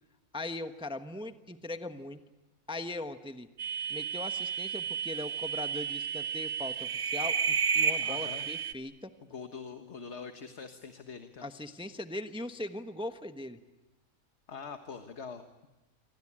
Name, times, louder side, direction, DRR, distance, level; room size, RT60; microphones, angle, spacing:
voice 1, 0.3-2.2 2.7-3.5 3.9-9.1 11.4-13.6, left 2 dB, 5° right, 8 dB, 1.0 m, -40 dB
sound 1, 3.6-8.7, right 7 dB, 60° right, 1.6 m, -32 dB
voice 2, 8.0-8.5 9.3-11.5 14.5-15.7, left 5 dB, 50° left, 7 dB, 1.7 m, -44 dB
27.5 x 25.0 x 8.7 m, 1.1 s
omnidirectional pair, 1.5 m